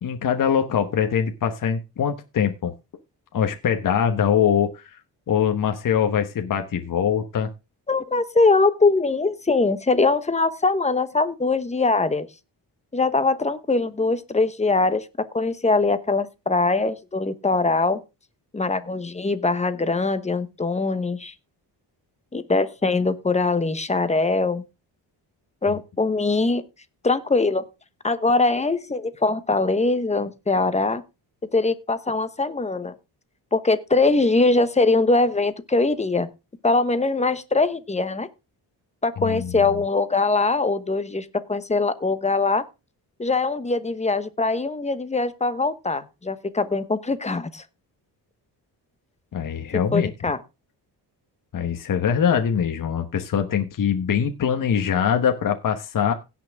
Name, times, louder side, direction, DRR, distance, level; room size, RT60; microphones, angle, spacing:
voice 1, 0.0-2.7 3.3-4.9 5.3-7.5 25.6-25.8 39.2-39.5 49.3-50.1 51.5-56.1, left 8 dB, 50° left, 1.2 m, -23 dB
voice 2, 7.9-12.3 12.9-15.0 15.3-18.0 18.5-21.3 22.3-24.6 25.6-26.6 27.0-27.6 28.0-31.0 31.5-32.9 33.5-36.3 36.6-38.3 39.0-42.6 43.2-47.6 49.9-50.4, left 3 dB, 15° left, 1.0 m, -22 dB
17.0 x 6.0 x 3.5 m
cardioid pair, 130°, 41 cm